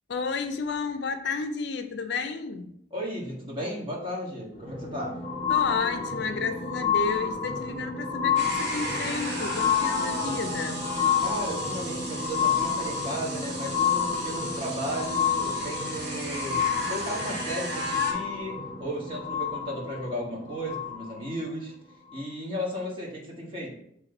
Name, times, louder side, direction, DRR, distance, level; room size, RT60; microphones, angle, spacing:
voice 1, 0.1-2.7 5.5-10.9, left 4 dB, 60° left, 8 dB, 0.5 m, -32 dB
voice 2, 2.9-5.2 11.2-21.7 22.1-23.7, equal, 25° right, -4 dB, 1.6 m, -35 dB
sound 1, 4.5-21.4 22.1-22.2, left 7 dB, 40° left, 1.8 m, -29 dB
sound 2, 8.4-18.1, right 1 dB, 60° right, 2.0 m, -35 dB
7.5 x 3.2 x 4.0 m, 0.72 s
head